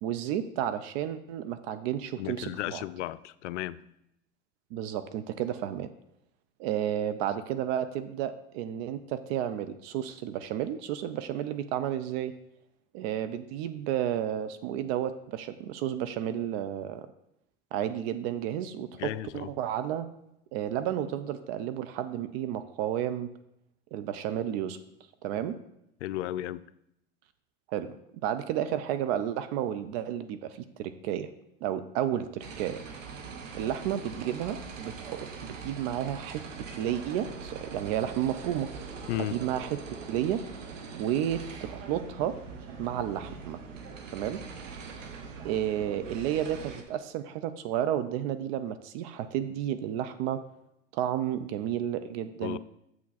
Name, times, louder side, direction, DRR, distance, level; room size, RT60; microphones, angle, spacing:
voice 1, 0.0-2.8 4.7-5.9 6.6-12.3 12.9-17.1 17.7-20.1 20.5-23.3 23.9-24.8 25.2-25.6 27.7-28.0 28.2-31.3 31.6-32.8 33.5-38.7 39.2-40.4 40.9-42.4 42.8-43.6 44.1-44.4 45.4-50.4 50.9-52.6, right 10 dB, 55° right, 11 dB, 0.6 m, -32 dB
voice 2, 2.2-3.8 18.9-19.5 26.0-26.6 39.1-39.4 52.4-52.6, left 14 dB, 70° left, 16 dB, 0.5 m, -34 dB
sound 1, 32.4-46.8, right 5 dB, 80° right, 1.1 m, -42 dB
7.3 x 6.1 x 4.1 m, 0.79 s
hypercardioid pair, 95°, 37 cm